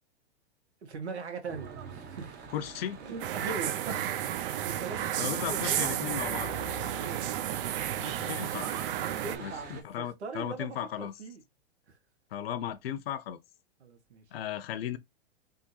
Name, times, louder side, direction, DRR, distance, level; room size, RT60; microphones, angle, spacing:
voice 1, 0.8-2.4 3.0-4.1 4.4-7.2 9.2-11.4 11.9-12.0 13.8-14.2, right 4 dB, 85° right, 1.3 m, -41 dB
Church bell / Traffic noise roadway noise, 1.5-9.8, right 4 dB, 30° right, 0.9 m, -44 dB
voice 2, 2.5-3.0 5.2-6.5 8.0-8.7 9.4-11.1 12.3-13.4 14.3-15.0, left 10 dB, 65° left, 0.6 m, -36 dB
sound 1, 3.2-9.4, right 11 dB, 55° right, 0.5 m, -32 dB
3.6 x 2.5 x 2.7 m
hypercardioid pair, 125°, 32 cm